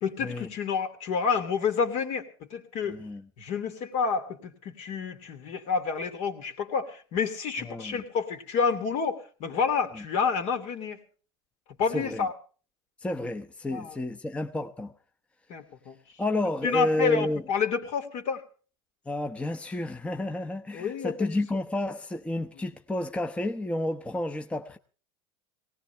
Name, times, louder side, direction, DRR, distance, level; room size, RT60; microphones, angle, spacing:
voice 1, 0.0-3.0 3.4-11.0 11.8-12.3 13.7-14.0 15.5-16.0 16.6-18.4 20.7-21.2, left 5 dB, 55° left, 2.9 m, -29 dB
voice 2, 2.9-3.2 7.6-8.0 10.0-10.1 11.9-12.2 13.0-14.9 16.2-17.4 19.1-24.8, left 1 dB, 10° left, 0.9 m, -31 dB
19.0 x 18.0 x 3.4 m
hypercardioid pair, 95°, 13 cm